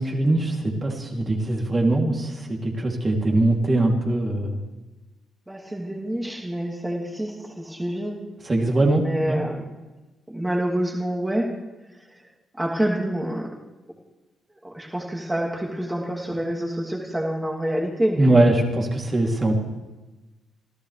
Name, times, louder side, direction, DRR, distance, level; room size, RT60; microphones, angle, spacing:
voice 1, 0.0-4.6 8.4-9.4 18.2-19.6, right 2 dB, 25° right, 1 dB, 3.1 m, -21 dB
voice 2, 5.5-8.1 9.0-9.6 10.3-11.5 12.6-13.5 14.6-18.4, right 1 dB, 10° right, -2 dB, 3.0 m, -27 dB
27.0 x 14.0 x 3.4 m, 1.1 s
cardioid pair, 90°, 0 cm